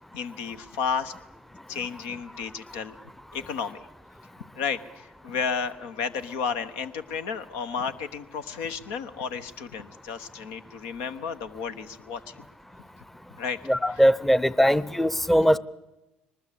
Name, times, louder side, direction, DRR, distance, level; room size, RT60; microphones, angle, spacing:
voice 1, 0.1-1.1 1.7-3.0 3.3-3.9 4.6-12.4 13.4-13.6, left 6 dB, 80° left, 9 dB, 1.2 m, -32 dB
voice 2, 13.7-15.6, equal, 5° left, 19 dB, 0.7 m, -20 dB
22.5 x 20.0 x 8.4 m, 1.0 s
hypercardioid pair, 65°, 4 cm